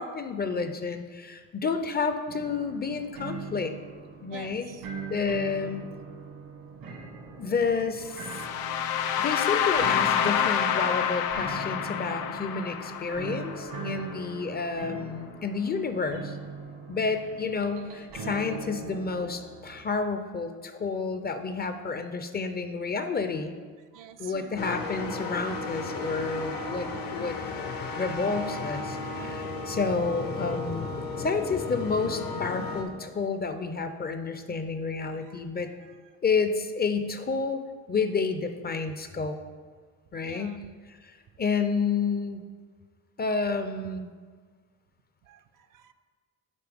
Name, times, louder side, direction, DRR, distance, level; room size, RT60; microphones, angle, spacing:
voice 1, 0.0-3.7 4.2-4.7 5.1-5.8 7.4-8.4 9.2-16.4 16.9-23.5 24.2-27.3 28.0-35.7 36.2-37.6 37.9-39.4 40.1-40.6 41.4-42.4 43.2-44.1, left 4 dB, 30° left, 8 dB, 0.5 m, -30 dB
sound 1, 2.3-19.8, right 4 dB, 85° right, 1.5 m, -41 dB
voice 2, 4.3-4.9 8.0-8.2 23.9-24.7 35.2-35.4 35.8-36.0 40.2-40.7 45.2-45.9, right 10 dB, 60° right, 9 dB, 0.5 m, -48 dB
sound 2, 8.2-14.1, left 9 dB, 90° left, 0.5 m, -28 dB
sound 3, 24.6-32.8, left 3 dB, 70° left, 1.0 m, -34 dB
8.3 x 4.4 x 3.5 m, 1.5 s
cardioid pair, 80°, 35 cm